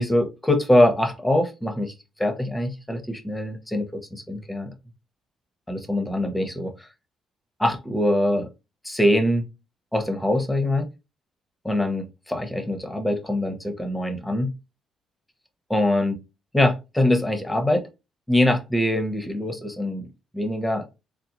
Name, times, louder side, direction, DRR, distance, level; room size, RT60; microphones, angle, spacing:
voice 1, 0.0-1.9 2.2-4.7 5.7-6.9 7.6-8.5 8.8-9.5 9.9-10.9 11.6-14.5 15.7-16.2 16.5-17.9 18.3-20.1 20.3-20.8, left 1 dB, 10° left, 5 dB, 0.8 m, -23 dB
3.8 x 2.0 x 2.9 m, 0.26 s
cardioid pair, 90°, 0 cm